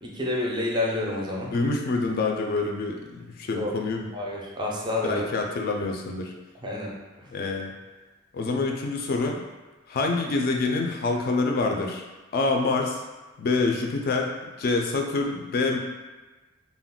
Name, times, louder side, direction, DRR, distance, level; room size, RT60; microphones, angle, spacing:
voice 1, 0.0-1.5 3.5-3.7 4.1-5.2 6.6-6.9, left 2 dB, 20° right, -2 dB, 0.4 m, -28 dB
voice 2, 1.5-4.1 5.0-6.3 7.3-7.7 8.3-9.4 9.9-12.0 12.3-13.0 13.4-15.8, left 3 dB, 50° left, 2 dB, 0.3 m, -26 dB
2.3 x 2.1 x 3.6 m, 1.2 s
head